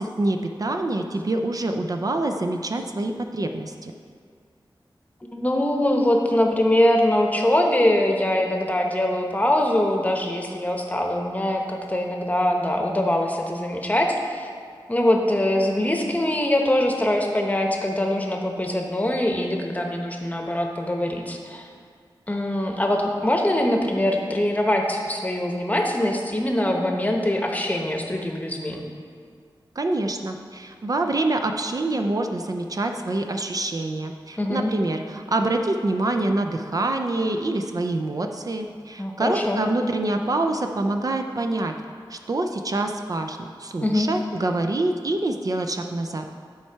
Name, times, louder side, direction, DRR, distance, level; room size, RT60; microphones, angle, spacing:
voice 1, 0.0-3.9 29.8-41.7 42.1-46.3, right 2 dB, 45° right, 5 dB, 0.4 m, -26 dB
voice 2, 5.3-14.5 14.9-21.7 22.3-28.8 34.4-34.7 39.0-39.6 43.8-44.1, left 1 dB, 20° left, 2 dB, 0.9 m, -23 dB
10.5 x 4.5 x 4.5 m, 2.1 s
wide cardioid pair, 90°, 9 cm